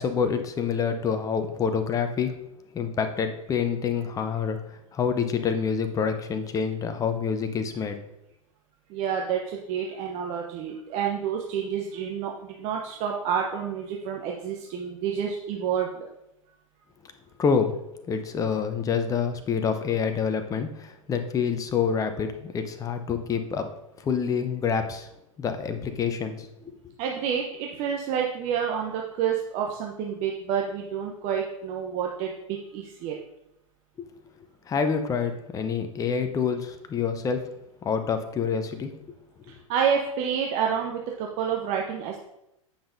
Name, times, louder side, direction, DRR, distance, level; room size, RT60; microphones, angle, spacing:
voice 1, 0.0-2.3 2.7-8.0 17.4-17.7 18.1-23.7 24.0-25.1 25.4-26.5 34.0-34.1 34.7-37.4 37.8-38.9 39.5-39.6, left 6 dB, 20° left, 8 dB, 0.7 m, -27 dB
voice 2, 8.9-16.1 27.0-33.2 39.5-42.2, right 7 dB, 40° right, 0 dB, 0.8 m, -29 dB
8.6 x 5.6 x 2.6 m, 0.86 s
figure-of-eight pair, 95°, 18 cm